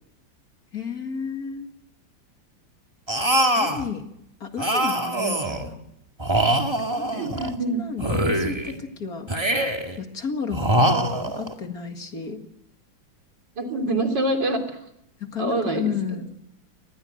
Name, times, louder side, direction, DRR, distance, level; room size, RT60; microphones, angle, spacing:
voice 1, 0.7-1.7 3.6-4.1 4.4-5.8 7.0-9.3 10.0-12.5 15.2-16.3, left 6 dB, 50° left, 5 dB, 2.4 m, -33 dB
sound 1, 3.1-3.9 4.6-5.7 6.2-7.6 8.0-8.8 9.3-10.0 10.5-11.5, right 1 dB, 15° right, 2.0 m, -23 dB
voice 2, 7.1-7.8 13.6-14.8 15.4-15.9, right 1 dB, 70° right, 5 dB, 4.0 m, -25 dB
24.0 x 20.0 x 7.8 m, 0.80 s
omnidirectional pair, 2.0 m